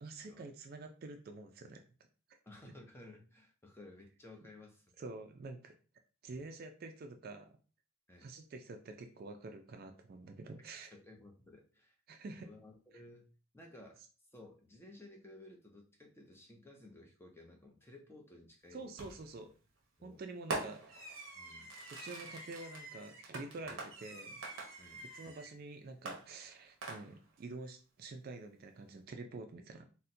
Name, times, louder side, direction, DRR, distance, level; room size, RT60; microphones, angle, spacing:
voice 1, 0.0-1.8 5.0-5.7 6.2-7.5 8.2-10.9 12.1-12.5 18.7-19.5 20.0-21.0 21.9-24.4 25.1-29.9, right 3 dB, 45° right, 6 dB, 0.3 m, -48 dB
voice 2, 2.4-4.9 6.3-6.4 8.1-8.3 10.9-11.9 12.4-13.3 13.5-14.0 14.3-18.9 20.0-20.2 21.3-21.7 23.7-23.8 24.8-25.1, left 2 dB, 10° left, 1 dB, 0.5 m, -56 dB
Fireworks, 19.0-19.4 20.5-25.5 26.1-27.4, right 2 dB, 65° right, 0.8 m, -45 dB
4.0 x 2.1 x 2.6 m, 0.36 s
head